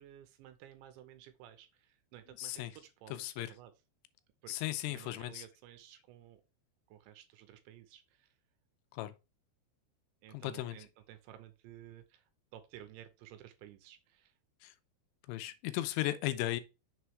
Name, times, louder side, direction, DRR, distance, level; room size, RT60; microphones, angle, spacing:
voice 1, 0.0-3.7 4.4-4.5 4.9-6.4 6.9-8.4 10.2-14.3, right 12 dB, 85° right, 3.0 m, -54 dB
voice 2, 2.4-2.7 3.2-3.5 4.5-5.4 8.9-9.1 10.3-10.8 14.6-14.7 15.3-16.6, left 15 dB, 85° left, 3.0 m, -36 dB
7.0 x 3.2 x 4.5 m
omnidirectional pair, 5.4 m